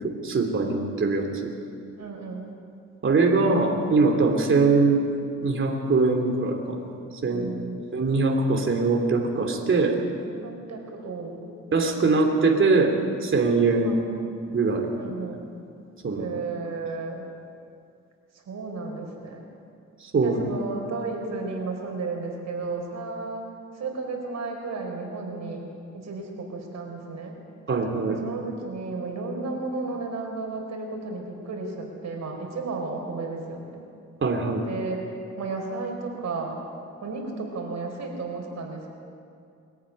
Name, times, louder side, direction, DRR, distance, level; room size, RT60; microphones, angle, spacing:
voice 1, 0.0-1.5 3.0-5.0 5.4-6.8 7.2-7.5 7.9-10.0 11.7-14.0 14.5-14.9 16.0-16.3 20.0-20.4 27.7-28.2 34.2-34.6, right 3 dB, 45° right, 2 dB, 3.0 m, -22 dB
voice 2, 2.0-2.5 7.3-7.8 10.2-11.5 13.8-14.1 15.0-15.4 16.2-17.3 18.5-19.4 20.2-23.4 23.8-25.7 25.9-27.3 28.1-33.8 34.6-35.1 35.4-36.6 37.0-38.9, right 3 dB, 65° right, 2 dB, 4.8 m, -33 dB
23.0 x 14.5 x 9.8 m, 2.4 s
cardioid pair, 105°, 29 cm